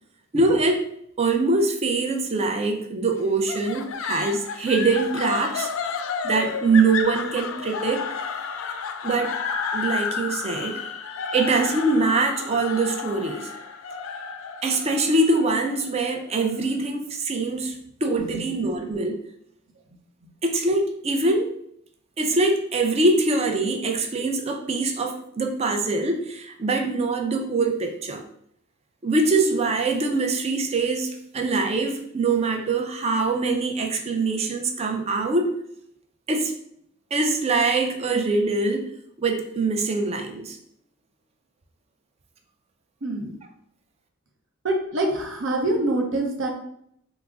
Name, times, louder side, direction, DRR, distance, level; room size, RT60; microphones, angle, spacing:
voice 1, 0.3-0.8 1.2-5.7 6.2-8.0 9.0-9.3 9.7-10.8 11.3-13.5 14.6-19.2 20.4-21.5 22.2-28.2 29.0-35.5 36.3-36.5 37.1-38.9 39.2-40.6, right 3 dB, 30° right, 3 dB, 0.4 m, -23 dB
sound 1, 3.5-16.6, left 6 dB, 65° left, 0.3 m, -31 dB
voice 2, 43.0-43.3 44.6-46.5, right 2 dB, 65° right, 1 dB, 0.7 m, -25 dB
3.6 x 2.0 x 3.4 m, 0.71 s
head